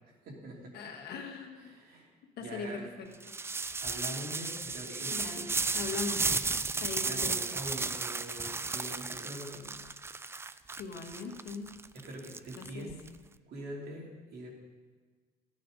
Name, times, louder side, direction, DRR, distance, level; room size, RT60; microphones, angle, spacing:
voice 1, 0.2-0.8 1.6-2.1 2.4-2.9 3.5-5.2 7.0-9.8 11.9-13.0 13.5-14.5, right 1 dB, 65° right, -2 dB, 3.0 m, -44 dB
voice 2, 0.7-1.7 2.4-3.1 5.1-5.5 5.7-6.4 6.7-7.5 10.8-11.7 12.6-12.9, left 4 dB, 70° left, 1 dB, 1.8 m, -40 dB
sound 1, 3.2-13.1, right 4 dB, 15° right, 0.4 m, -34 dB
15.5 x 9.2 x 4.0 m, 1.5 s
cardioid pair, 110°, 17 cm